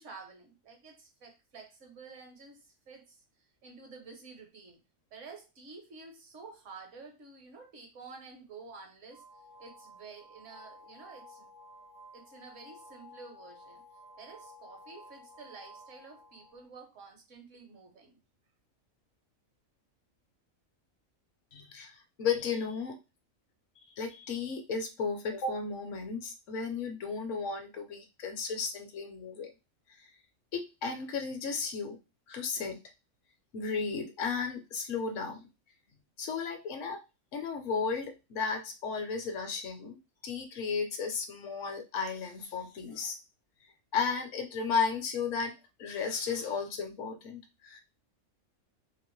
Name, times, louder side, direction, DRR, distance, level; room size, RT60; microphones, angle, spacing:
voice 1, 0.0-3.2 3.6-4.8 5.1-9.2 9.6-11.5 12.1-13.8 14.2-18.2, right 4 dB, 65° right, 3 dB, 1.1 m, -50 dB
sound 1, 9.1-16.7, left 1 dB, 90° right, 1.2 m, -53 dB
voice 2, 21.5-23.0 23.9-29.5 29.9-30.1 30.5-32.0 32.3-32.8 33.5-35.5 36.2-37.0 37.3-40.0 40.2-43.2 43.9-45.5 45.8-47.8, left 5 dB, 70° left, 5 dB, 1.0 m, -34 dB
2.9 x 2.5 x 3.0 m, 0.27 s
omnidirectional pair, 1.4 m